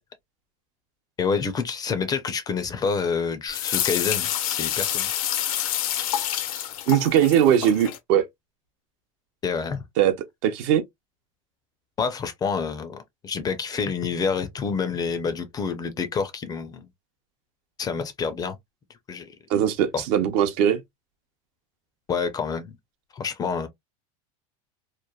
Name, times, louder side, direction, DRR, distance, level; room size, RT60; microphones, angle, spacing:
voice 1, 1.2-5.1 9.4-9.8 12.0-16.9 17.8-18.6 19.1-19.3 19.9-20.0 22.1-22.7 23.1-23.7, left 5 dB, 20° left, 0.4 m, -28 dB
sound 1, 3.5-8.0, left 11 dB, 80° left, 0.6 m, -27 dB
voice 2, 6.9-8.3 10.0-10.1 10.4-10.8 19.5-20.8, right 10 dB, 60° right, 0.6 m, -20 dB
3.0 x 2.1 x 2.2 m
supercardioid pair, 130°, 18 cm